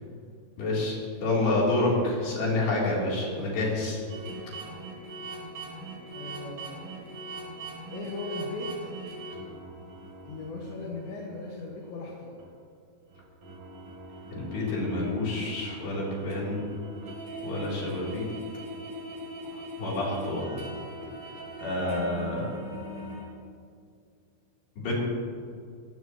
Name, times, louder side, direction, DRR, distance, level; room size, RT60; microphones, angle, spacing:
voice 1, 0.6-1.0 1.2-4.0 14.3-16.6 17.4-18.3 19.8-20.5 21.6-22.5 24.8-24.9, left 2 dB, 65° left, -5 dB, 5.5 m, -28 dB
sound 1, 4.1-12.0 12.4-12.5 13.1-23.3, right 1 dB, 55° right, 4.9 m, -41 dB
voice 2, 5.7-6.8 7.9-8.9 10.2-12.4, left 2 dB, 80° left, -2 dB, 3.9 m, -38 dB
20.5 x 16.5 x 3.1 m, 2.2 s
omnidirectional pair, 5.1 m